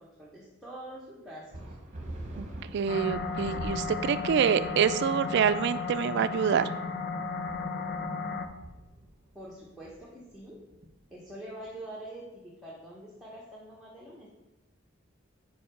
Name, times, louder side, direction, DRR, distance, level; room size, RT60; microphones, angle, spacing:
voice 1, 0.0-1.8 9.3-10.6 11.1-14.3, right 1 dB, ahead, -6 dB, 0.9 m, -45 dB
sound 1, 1.5-11.5, right 1 dB, 35° right, 0.9 m, -45 dB
voice 2, 2.7-6.7, right 7 dB, 55° right, 13 dB, 0.3 m, -26 dB
sound 2, 2.9-8.5, left 4 dB, 55° left, 0.5 m, -34 dB
5.2 x 4.6 x 5.0 m, 1.1 s
head